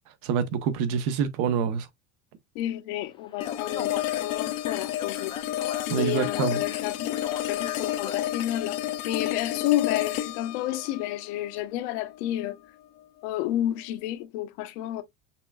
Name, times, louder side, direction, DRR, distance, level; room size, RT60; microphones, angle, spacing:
voice 1, 0.2-1.9 5.9-6.6, right 7 dB, 65° right, 1.0 m, -26 dB
voice 2, 2.5-12.6 13.2-15.0, left 13 dB, 75° left, 1.0 m, -31 dB
Speech, 3.3-8.6, left 6 dB, 15° left, 0.5 m, -42 dB
sound 1, 3.4-12.4, left 13 dB, 50° left, 0.7 m, -31 dB
5.8 x 3.5 x 2.3 m
cardioid pair, 165°, 34 cm